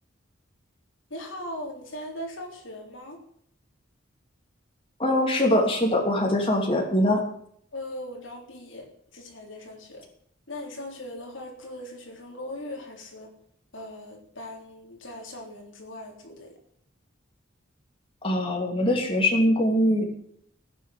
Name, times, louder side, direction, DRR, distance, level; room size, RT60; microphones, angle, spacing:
voice 1, 1.1-3.2 7.7-10.1 10.5-13.3 13.7-16.6, left 1 dB, 75° left, 1 dB, 3.7 m, -39 dB
voice 2, 5.0-7.2 18.2-20.0, left 1 dB, 30° left, 0 dB, 3.0 m, -22 dB
16.5 x 9.4 x 7.7 m, 0.66 s
head